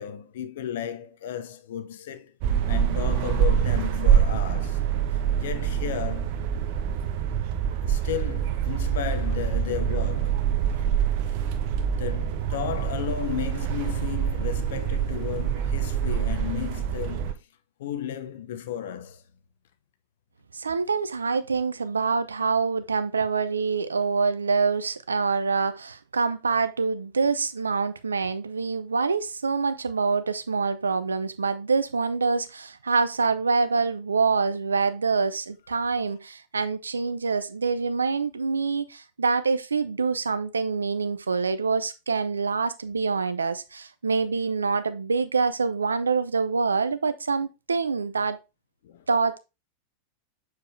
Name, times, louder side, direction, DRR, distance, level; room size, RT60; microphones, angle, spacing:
voice 1, 0.0-2.3 2.7-4.9 5.4-6.4 7.8-10.5 11.9-17.4 17.8-19.2 48.8-49.1, left 10 dB, 65° left, 0.8 m, -34 dB
sound 1, 2.4-17.3, right 8 dB, 55° right, 1.0 m, -25 dB
voice 2, 20.5-48.4 49.1-49.4, right 4 dB, 85° right, 0.6 m, -26 dB
6.7 x 4.7 x 3.2 m
hypercardioid pair, 95°, 0 cm